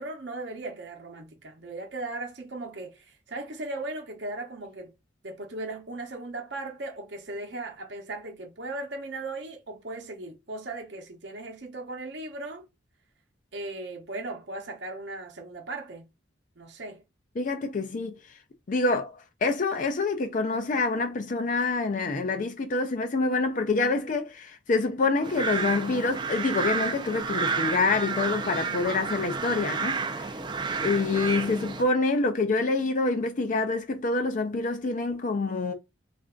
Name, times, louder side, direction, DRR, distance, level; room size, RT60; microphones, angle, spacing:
voice 1, 0.0-4.9 5.2-12.7 13.5-16.1 16.6-17.0, right 2 dB, 65° right, 0.8 m, -37 dB
voice 2, 17.4-18.2 18.7-30.3 30.8-35.7, left 3 dB, 45° left, 0.4 m, -26 dB
sound 1, 25.2-31.8, right 4 dB, 25° right, 0.4 m, -31 dB
3.3 x 2.5 x 3.7 m
head